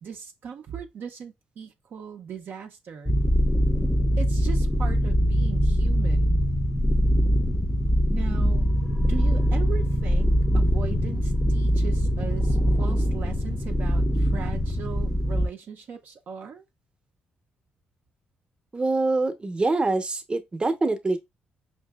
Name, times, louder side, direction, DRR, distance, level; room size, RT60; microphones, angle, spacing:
voice 1, 0.0-3.1 4.2-6.4 8.1-16.6, right 7 dB, 60° right, 0.5 m, -39 dB
sound 1, 3.1-15.5, equal, 10° left, 0.5 m, -22 dB
voice 2, 18.7-21.2, right 3 dB, 25° right, 0.7 m, -25 dB
4.7 x 2.6 x 2.2 m
supercardioid pair, 60°, 4 cm